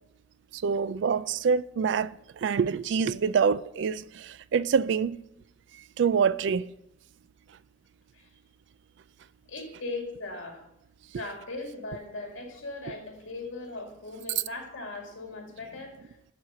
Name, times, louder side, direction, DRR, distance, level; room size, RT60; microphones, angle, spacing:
voice 1, 0.5-5.2 6.0-6.7 11.1-11.2, right 6 dB, 60° right, 0.3 m, -26 dB
voice 2, 9.5-10.6 11.1-16.1, left 2 dB, 70° left, 2.2 m, -39 dB
11.0 x 4.5 x 5.7 m
head